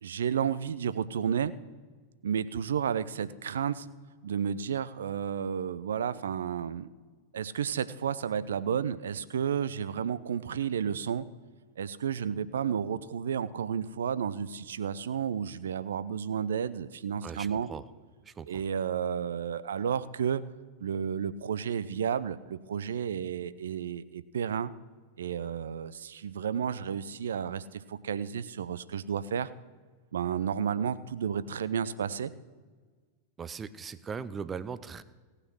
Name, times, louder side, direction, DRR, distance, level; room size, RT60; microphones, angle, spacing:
voice 1, 0.0-1.5 2.2-3.9 4.2-6.9 7.3-11.3 11.8-17.7 18.5-20.4 20.8-24.7 25.2-29.5 30.1-32.3, right 8 dB, 65° right, 16 dB, 0.5 m, -32 dB
voice 2, 17.2-17.8 18.3-18.6 33.4-35.0, right 6 dB, 20° right, 15 dB, 0.5 m, -39 dB
17.5 x 6.5 x 6.2 m, 1.4 s
figure-of-eight pair, 90°, 0 cm